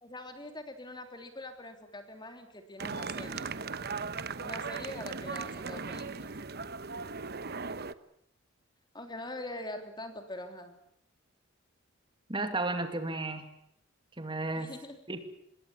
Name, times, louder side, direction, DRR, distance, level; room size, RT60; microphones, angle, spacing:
voice 1, 0.0-3.6 4.4-6.3 8.9-10.7 14.5-15.0, left 1 dB, 20° left, 6 dB, 3.2 m, -43 dB
sound 1, 2.8-7.9, right 4 dB, 50° right, 1.1 m, -38 dB
voice 2, 12.3-13.4 14.2-14.7 15.1-15.2, right 2 dB, 25° right, 7 dB, 2.4 m, -33 dB
25.5 x 21.5 x 7.3 m, 0.76 s
head